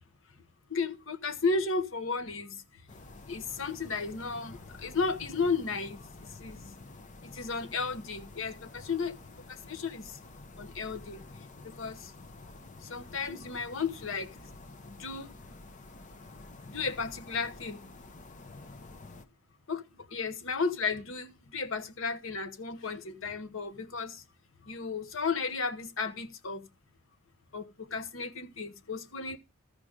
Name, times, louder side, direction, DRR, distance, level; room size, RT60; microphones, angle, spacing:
voice 1, 0.7-2.6 3.3-6.0 6.4-6.6 7.2-9.2 9.5-10.2 10.6-11.2 11.6-12.1 12.8-14.3 14.9-15.3 16.7-17.9 19.7-24.2 24.7-26.7 27.5-29.4, left 4 dB, 65° left, 0.9 m, -34 dB
sound 1, 2.9-19.3, left 2 dB, 35° left, 0.7 m, -49 dB
14.0 x 5.0 x 5.0 m
head